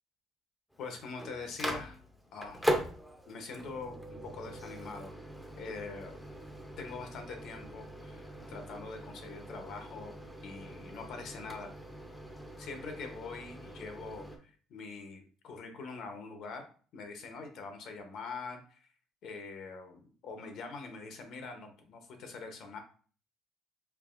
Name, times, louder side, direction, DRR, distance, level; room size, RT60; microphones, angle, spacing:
Microwave oven, 0.7-14.4, equal, 5° left, 0.6 m, -41 dB
voice 1, 0.8-2.0 2.3-2.7 3.3-5.2 5.6-6.2 6.8-10.2 10.4-11.7 12.6-16.7 16.9-18.9 19.2-22.8, left 4 dB, 55° left, 5 dB, 0.8 m, -44 dB
4.7 x 2.9 x 2.5 m, 0.41 s
cardioid pair, 140°, 0 cm